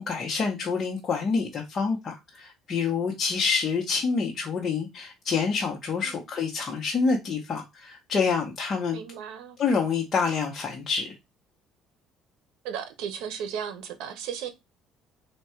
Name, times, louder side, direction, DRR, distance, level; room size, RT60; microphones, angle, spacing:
voice 1, 0.0-9.0 9.6-11.2, left 5 dB, 35° left, 0.7 m, -27 dB
voice 2, 8.9-9.6 12.6-14.5, right 8 dB, 85° right, 0.7 m, -35 dB
3.5 x 2.2 x 4.3 m
cardioid pair, 145°, 0 cm